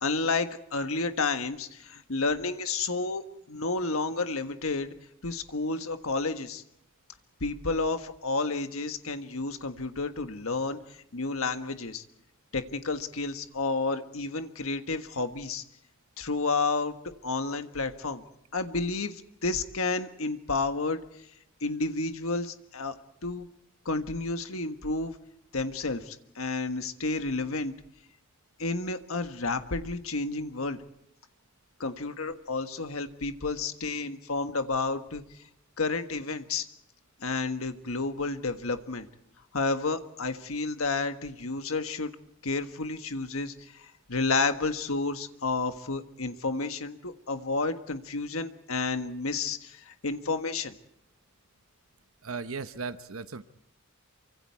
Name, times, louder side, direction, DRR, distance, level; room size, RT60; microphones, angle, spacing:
voice 1, 0.0-4.9 5.2-6.6 7.4-10.8 11.1-12.0 12.5-15.6 16.2-16.9 17.2-18.2 18.5-21.0 21.6-22.9 23.2-23.5 23.8-25.1 25.5-27.7 28.6-30.8 31.8-35.2 35.8-36.6 37.2-39.1 39.5-42.1 42.4-43.7 44.1-50.7, left 3 dB, 85° left, 7 dB, 1.5 m, -31 dB
voice 2, 52.2-53.4, right 4 dB, 80° right, 10 dB, 1.0 m, -36 dB
28.5 x 24.5 x 4.7 m, 0.75 s
head